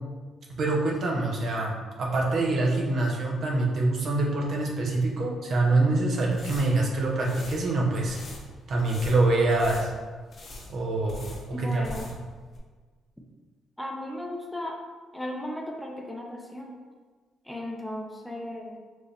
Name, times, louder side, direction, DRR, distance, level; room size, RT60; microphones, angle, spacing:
voice 1, 0.6-8.2 8.7-9.9 10.7-11.3 11.6-11.8, right 2 dB, 60° right, -1 dB, 0.8 m, -25 dB
sound 1, 6.2-12.3 12.5-12.6, left 2 dB, 50° left, 0.8 m, -43 dB
voice 2, 11.5-12.1 13.8-14.8 15.1-16.8 17.4-18.8, left 1 dB, 5° left, 0 dB, 0.6 m, -36 dB
4.7 x 2.7 x 3.3 m, 1.5 s
cardioid pair, 90°, 0 cm